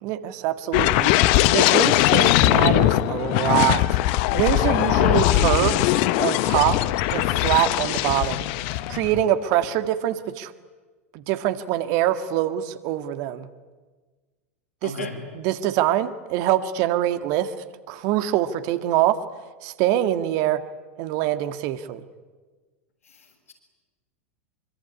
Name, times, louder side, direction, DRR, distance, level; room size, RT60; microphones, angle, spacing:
voice 1, 0.0-4.0 4.3-5.8 6.2-6.8 7.1-10.5 11.1-13.5 14.8-14.9 15.4-17.5 17.9-19.2 19.6-20.6 21.0-22.0, right 13 dB, 45° right, 10 dB, 1.8 m, -24 dB
sound 1, 0.7-9.2 9.6-9.9, left 15 dB, 45° left, 1.1 m, -20 dB
voice 2, 4.8-5.2 14.8-15.2 23.0-23.5, left 4 dB, 75° left, 2 dB, 7.4 m, -36 dB
25.5 x 24.0 x 9.8 m, 1.4 s
figure-of-eight pair, 85°, 8 cm